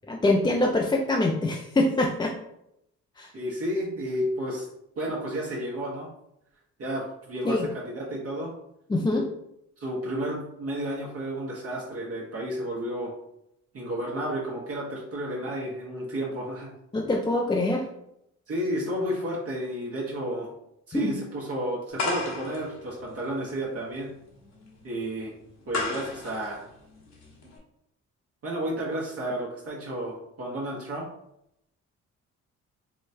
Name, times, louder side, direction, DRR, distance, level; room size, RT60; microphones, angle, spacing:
voice 1, 0.1-2.3 3.2-3.3 7.4-7.7 8.9-9.3 16.9-17.8 20.9-21.2, left 2 dB, 15° left, 0 dB, 0.4 m, -24 dB
voice 2, 3.3-4.7 5.0-6.1 6.8-8.5 9.8-13.1 13.7-16.7 18.5-20.5 20.9-24.1 24.8-25.3 25.7-26.7 28.4-31.1, equal, 50° right, -4 dB, 1.0 m, -32 dB
sound 1, 22.0-27.6, left 2 dB, 65° left, 1.1 m, -35 dB
4.7 x 2.1 x 2.7 m, 0.79 s
cardioid pair, 90°, 30 cm